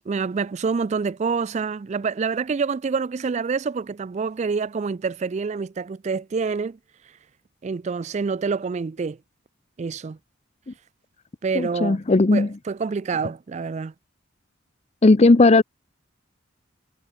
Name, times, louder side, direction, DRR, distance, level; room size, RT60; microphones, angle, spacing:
voice 1, 0.0-6.8 7.6-9.2 9.8-10.2 11.4-12.0 12.3-13.9, right 5 dB, 35° right, 0.4 m, -27 dB
voice 2, 11.5-12.5 15.0-15.6, left 2 dB, 35° left, 0.6 m, -16 dB
head